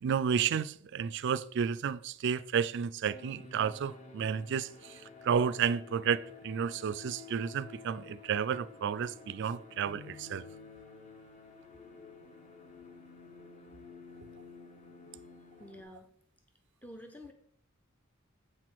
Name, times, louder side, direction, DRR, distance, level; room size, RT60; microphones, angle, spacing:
voice 1, 0.0-4.9 5.2-10.4, right 7 dB, 55° right, 0.3 m, -31 dB
sound 1, 3.1-15.8, left 5 dB, 35° left, 1.0 m, -52 dB
sound 2, 9.9-13.4, left 5 dB, 70° left, 2.5 m, -59 dB
voice 2, 15.6-16.1 16.8-17.3, left 1 dB, 10° left, 0.6 m, -48 dB
7.9 x 6.1 x 4.6 m
head